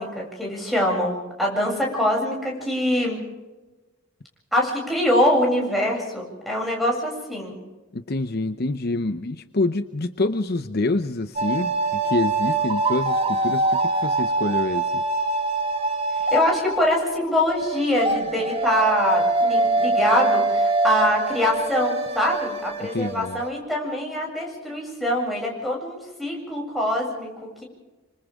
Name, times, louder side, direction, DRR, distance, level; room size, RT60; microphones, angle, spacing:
voice 1, 0.0-3.2 4.5-7.6 16.1-27.6, left 1 dB, ahead, -2 dB, 7.6 m, -24 dB
voice 2, 7.9-15.0 22.8-23.4, left 2 dB, 50° left, 9 dB, 0.8 m, -26 dB
sound 1, 11.4-17.2 17.5-23.5, right 2 dB, 30° right, 1.9 m, -24 dB
29.0 x 25.5 x 3.7 m, 1.2 s
head